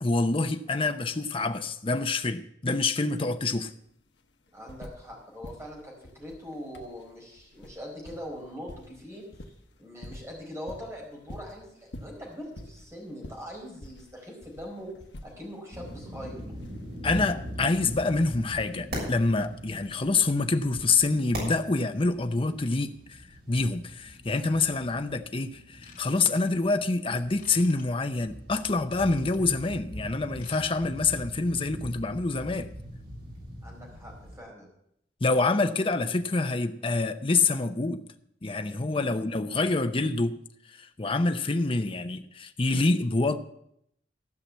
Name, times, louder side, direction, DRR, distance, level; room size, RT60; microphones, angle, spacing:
voice 1, 0.0-3.7 17.0-23.2 23.5-32.7 35.2-38.1 38.4-40.4 40.7-43.4, left 3 dB, 30° left, 0.7 m, -26 dB
sound 1, 3.4-3.5 3.7-5.2 5.4-21.4 22.5-22.6, left 1 dB, 75° left, 1.2 m, -48 dB
voice 2, 4.5-9.5 9.8-14.9 15.2-16.4 33.6-34.7, equal, 15° right, 4.1 m, -42 dB
sound 2, 15.7-34.4, equal, 60° right, 6.9 m, -42 dB
Ratchet pawl / Tools, 25.8-26.7 27.4-27.8 28.6-29.6 30.2-30.6 30.9-31.1 31.6-31.7, left 6 dB, 50° left, 2.4 m, -53 dB
14.5 x 5.9 x 8.1 m
head